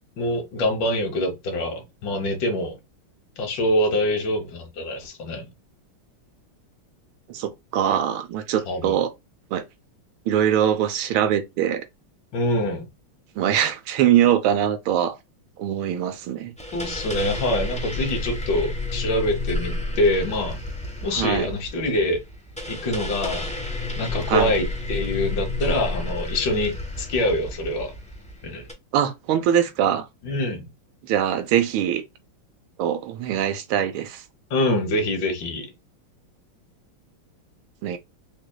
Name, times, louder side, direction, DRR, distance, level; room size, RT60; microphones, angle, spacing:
voice 1, 0.2-2.8 3.4-5.5 8.7-9.0 12.3-12.9 16.7-20.6 21.0-22.2 22.7-23.5 24.0-27.9 28.4-28.6 30.2-30.7 34.5-35.7, left 1 dB, 65° left, 1.9 m, -25 dB
voice 2, 7.3-9.1 9.5-9.6 10.3-11.8 13.4-15.2 15.6-16.5 21.1-21.5 24.3-24.5 28.9-30.0 31.1-32.0 32.8-34.2 37.8-38.0, right 10 dB, 90° right, 1.5 m, -22 dB
sound 1, 16.6-28.7, left 2 dB, 10° left, 0.4 m, -31 dB
6.0 x 2.6 x 2.2 m
omnidirectional pair, 2.2 m